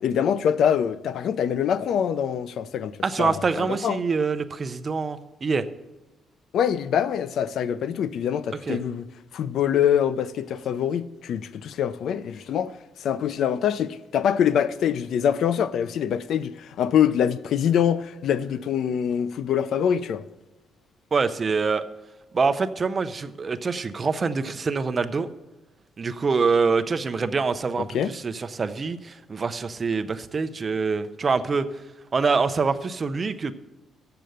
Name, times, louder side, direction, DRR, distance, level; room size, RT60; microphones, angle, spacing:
voice 1, 0.0-4.0 6.5-9.1 9.3-12.7 13.0-20.2 27.9-28.1, left 8 dB, 65° left, 0.5 m, -24 dB
voice 2, 3.0-5.6 8.7-8.8 21.1-21.8 22.3-25.3 26.0-31.7 32.1-33.5, right 4 dB, 30° right, 0.5 m, -25 dB
7.6 x 6.8 x 7.8 m
cardioid pair, 145°, 0 cm